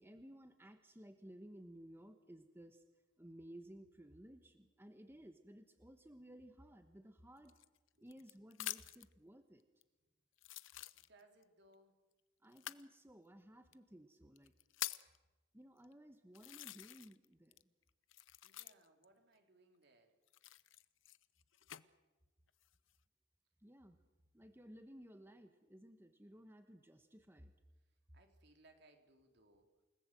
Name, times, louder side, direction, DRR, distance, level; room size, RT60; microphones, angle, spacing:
voice 1, 0.0-2.8 3.2-7.6 8.0-9.6 12.4-14.5 15.5-17.7 23.6-24.0 24.3-27.5, equal, 10° right, 8 dB, 1.2 m, -57 dB
sound 1, 7.4-9.1 9.8-9.9 10.4-11.4 12.5-12.9 13.7-13.8 14.4-15.2 15.8-15.9 16.3-17.2 17.5-19.0 20.3-21.8 22.5-23.0, left 14 dB, 90° left, 0.8 m, -47 dB
voice 2, 10.9-12.1 18.4-20.1 20.6-20.7 21.6-21.7 28.1-29.7, right 2 dB, 60° right, 5 dB, 3.7 m, -68 dB
29.0 x 19.0 x 7.8 m, 1.1 s
head